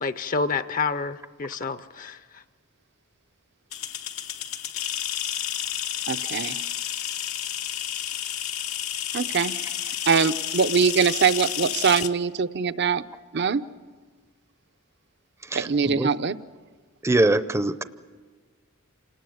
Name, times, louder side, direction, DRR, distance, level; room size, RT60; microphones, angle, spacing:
voice 1, 0.0-2.4, left 4 dB, 40° left, 13 dB, 0.6 m, -29 dB
sound 1, 3.7-12.1, left 10 dB, 90° left, 1.2 m, -31 dB
voice 2, 6.1-6.6 9.1-9.7 10.1-13.0 13.3-13.6 15.5-16.4, right 6 dB, 55° right, 13 dB, 0.7 m, -23 dB
voice 3, 15.5-16.1 17.0-17.8, right 2 dB, 15° right, 13 dB, 0.6 m, -23 dB
28.0 x 19.0 x 8.0 m, 1.5 s
head